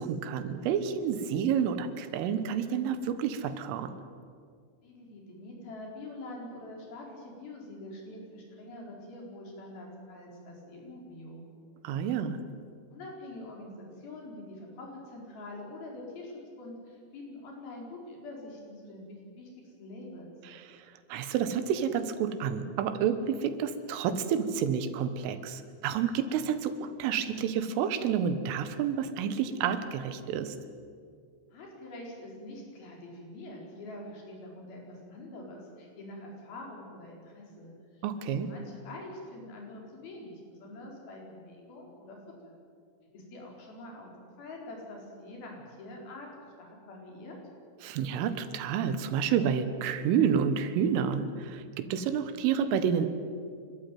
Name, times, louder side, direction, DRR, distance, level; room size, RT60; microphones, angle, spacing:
voice 1, 0.0-3.9 11.8-12.4 20.5-20.8 21.1-30.6 38.0-38.5 47.8-53.1, right 7 dB, 90° right, 10 dB, 3.9 m, -29 dB
voice 2, 4.8-11.4 12.9-20.3 31.5-42.2 42.4-42.6 43.1-44.1 44.4-46.3 46.6-47.4, left 1 dB, 50° left, -1 dB, 6.3 m, -45 dB
30.0 x 13.0 x 9.3 m, 2.2 s
omnidirectional pair, 5.6 m